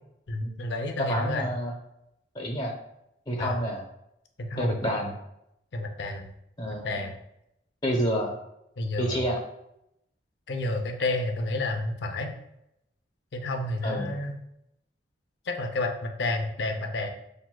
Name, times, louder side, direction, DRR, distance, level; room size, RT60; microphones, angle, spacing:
voice 1, 0.3-1.5 3.4-3.6 4.4-4.8 5.7-6.3 6.7-7.2 8.8-9.2 10.5-12.3 13.3-14.3 15.5-17.1, left 2 dB, 65° left, 4 dB, 0.5 m, -30 dB
voice 2, 1.0-1.7 2.3-2.7 3.3-3.8 4.6-5.2 6.6-7.0 7.8-8.4 9.0-9.4 13.8-14.1, equal, 25° left, -2 dB, 0.8 m, -28 dB
5.8 x 2.6 x 2.2 m, 0.81 s
head